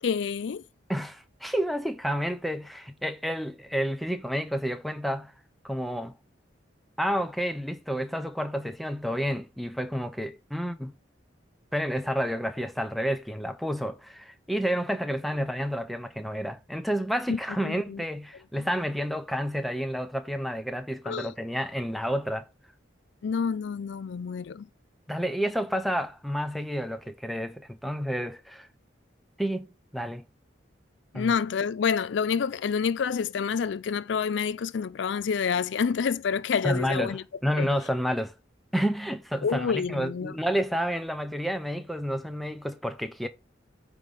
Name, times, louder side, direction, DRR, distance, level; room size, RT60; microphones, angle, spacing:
voice 1, 0.0-0.6 17.3-18.0 21.0-21.3 23.2-24.7 31.1-37.2 37.6-37.7 39.4-40.4, left 6 dB, 75° left, 0.4 m, -28 dB
voice 2, 0.9-5.3 5.6-6.2 7.0-10.9 11.7-22.4 25.1-28.7 29.4-30.2 31.1-31.3 36.6-37.2 37.4-38.3 38.7-43.3, equal, ahead, 0.8 m, -30 dB
9.0 x 3.4 x 5.6 m
head